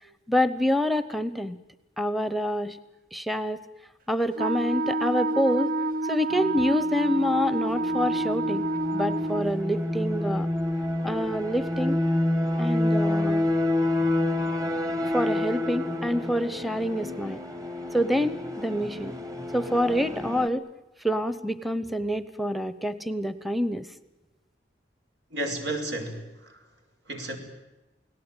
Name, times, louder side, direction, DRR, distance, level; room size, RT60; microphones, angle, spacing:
voice 1, 0.3-1.6 2.0-2.8 3.1-3.6 4.1-5.7 6.1-8.6 8.9-10.5 11.0-12.0 12.6-13.5 15.1-17.4 17.9-19.1 19.5-20.7 21.0-23.9, equal, ahead, 13 dB, 0.9 m, -27 dB
Wind instrument woodwind instrument, 4.4-9.5, right 2 dB, 55° right, 0.8 m, -28 dB
sound 1, 6.3-20.5, left 1 dB, 20° right, 1.4 m, -29 dB
voice 2, 25.3-26.6 27.1-27.4, right 1 dB, 85° right, 4 dB, 5.3 m, -32 dB
29.0 x 18.5 x 9.0 m, 1.0 s
head